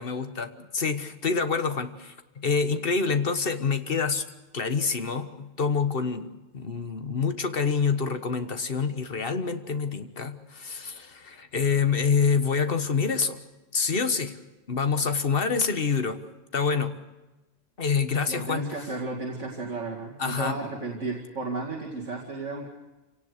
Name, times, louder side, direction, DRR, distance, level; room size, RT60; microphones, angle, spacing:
voice 1, 0.0-4.3 4.5-13.4 13.7-14.4 14.7-16.2 16.5-17.0 17.8-18.7 20.2-20.6, left 5 dB, 50° left, 9 dB, 1.5 m, -27 dB
voice 2, 18.3-22.7, right 3 dB, 70° right, -2 dB, 2.6 m, -33 dB
26.5 x 18.0 x 6.6 m, 1.1 s
omnidirectional pair, 1.3 m